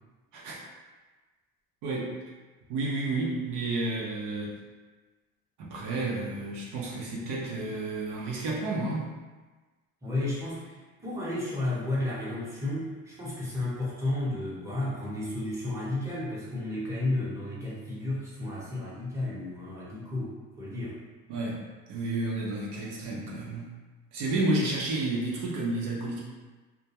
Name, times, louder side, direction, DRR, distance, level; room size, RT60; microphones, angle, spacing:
voice 1, 1.8-2.2 2.7-4.6 5.6-9.1 21.3-21.6 21.9-23.7 24.1-26.2, right 2 dB, 65° right, -4 dB, 0.7 m, -31 dB
voice 2, 10.0-21.0, left 2 dB, 10° right, -8 dB, 0.8 m, -32 dB
2.3 x 2.2 x 2.8 m, 1.3 s
supercardioid pair, 100°, 35 cm